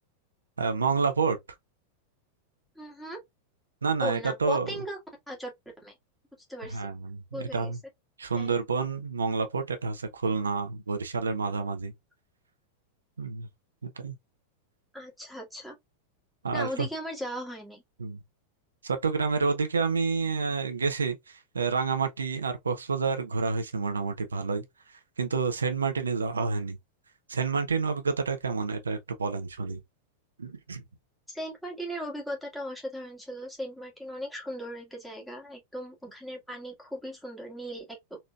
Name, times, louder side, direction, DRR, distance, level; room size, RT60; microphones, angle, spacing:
voice 1, 0.6-1.4 3.8-4.7 6.7-7.8 8.2-11.9 13.2-13.5 13.8-14.1 16.4-16.9 18.0-18.2 18.8-26.8 27.3-29.8 30.4-30.8, right 4 dB, 75° right, 0.6 m, -29 dB
voice 2, 2.8-3.2 4.0-5.0 5.3-5.5 5.8-5.9 6.5-6.9 7.3-7.7 8.4-8.6 14.9-15.8 16.5-17.8 31.3-38.2, equal, 5° left, 1.7 m, -37 dB
4.0 x 3.1 x 2.3 m
figure-of-eight pair, 90°, 0 cm